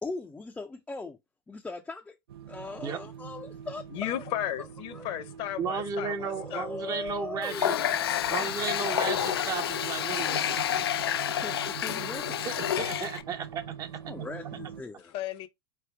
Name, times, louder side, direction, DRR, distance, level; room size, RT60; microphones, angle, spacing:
voice 1, 0.0-1.2 1.5-2.2 2.5-4.2 4.6-5.1 6.4-7.9 10.0-10.4 11.3-12.4 14.1-15.1, left 3 dB, 10° left, 0.5 m, -40 dB
sound 1, 2.3-14.8, right 8 dB, 80° right, 0.6 m, -44 dB
voice 2, 3.9-6.7 15.1-15.5, left 12 dB, 50° left, 0.8 m, -34 dB
voice 3, 5.6-7.8 8.3-10.7 12.4-13.9 14.2-14.3, right 6 dB, 30° right, 0.7 m, -34 dB
Water tap faucet, 7.4-13.2, left 10 dB, 90° left, 0.4 m, -29 dB
3.8 x 3.4 x 3.3 m
hypercardioid pair, 120°, 12 cm